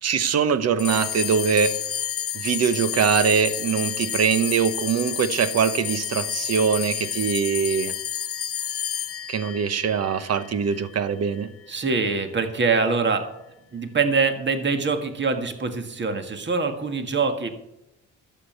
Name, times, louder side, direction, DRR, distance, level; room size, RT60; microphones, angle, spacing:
voice 1, 0.0-1.8 2.3-7.9 9.3-11.5, right 6 dB, 55° right, 13 dB, 1.1 m, -22 dB
sound 1, 0.8-11.4, left 9 dB, 50° left, 0.8 m, -30 dB
voice 2, 11.7-13.3 13.7-17.5, right 4 dB, 35° right, 7 dB, 1.8 m, -24 dB
12.0 x 7.7 x 6.7 m, 0.88 s
cardioid pair, 90°, 30 cm